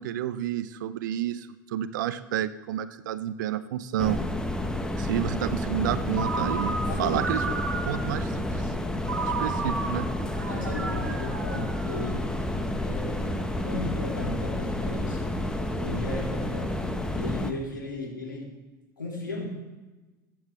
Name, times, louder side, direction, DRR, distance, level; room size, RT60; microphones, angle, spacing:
voice 1, 0.0-4.2 5.0-7.4 7.9-8.7 9.2-10.1, right 11 dB, 70° right, 14 dB, 0.7 m, -30 dB
sound 1, 4.0-17.5, left 1 dB, 5° left, 1.3 m, -30 dB
Ringtone, 6.1-8.2 9.1-12.4, right 4 dB, 85° right, 1.3 m, -33 dB
voice 2, 6.9-7.6 10.4-12.3 12.8-15.3 15.8-18.5 19.0-19.4, left 1 dB, 90° left, -2 dB, 3.4 m, -36 dB
22.5 x 8.9 x 3.3 m, 1.2 s
figure-of-eight pair, 75°, 11 cm